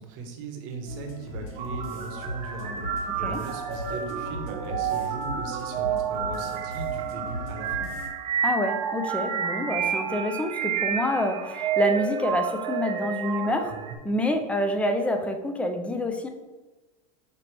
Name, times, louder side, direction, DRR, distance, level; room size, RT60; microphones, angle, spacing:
voice 1, 0.0-7.9, right 4 dB, 60° right, 4 dB, 0.9 m, -39 dB
sound 1, 0.9-8.1, left 1 dB, 70° left, 1.3 m, -38 dB
sound 2, 1.6-14.0, right 7 dB, 40° right, 0.7 m, -30 dB
voice 2, 3.1-3.4 8.4-13.7 14.0-16.3, left 1 dB, 5° left, 5 dB, 0.4 m, -27 dB
5.8 x 2.8 x 3.2 m, 1.1 s
supercardioid pair, 115°, 19 cm